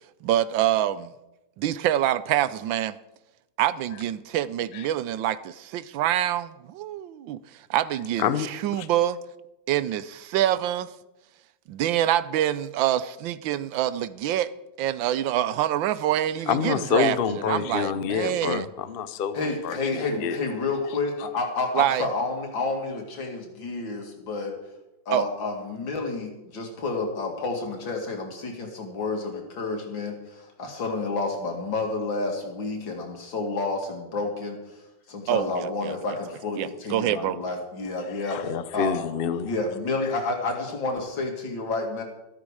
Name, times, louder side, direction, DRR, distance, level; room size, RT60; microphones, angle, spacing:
voice 1, 0.2-1.1 1.6-3.0 3.6-7.4 7.7-9.2 9.7-10.9 11.7-14.5 14.8-17.2 17.5-18.7 21.7-22.1 25.1-25.3 35.3-36.0 36.6-37.4, right 12 dB, 85° right, 1.4 m, -26 dB
voice 2, 8.2-8.9 16.5-20.4 38.0-39.6 40.0-40.1, left 8 dB, 55° left, 0.6 m, -28 dB
voice 3, 19.3-24.5 25.1-34.6 35.1-38.4 38.7-38.9 39.4-42.0, left 3 dB, 85° left, 3.1 m, -30 dB
13.5 x 13.0 x 4.9 m
omnidirectional pair, 2.0 m